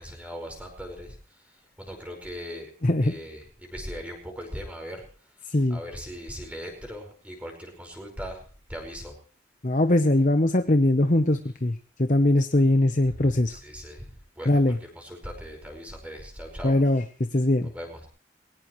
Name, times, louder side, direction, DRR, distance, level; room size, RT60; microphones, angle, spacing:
voice 1, 0.0-2.7 3.0-5.1 5.7-8.4 8.7-9.1 13.1-13.2 13.5-16.8 17.7-18.1, equal, 5° right, 2 dB, 5.1 m, -39 dB
voice 2, 2.8-3.1 5.5-5.8 9.6-13.6 14.5-14.8 16.6-17.0 17.3-17.7, left 1 dB, 40° left, 7 dB, 0.9 m, -21 dB
21.5 x 18.0 x 3.1 m, 0.40 s
head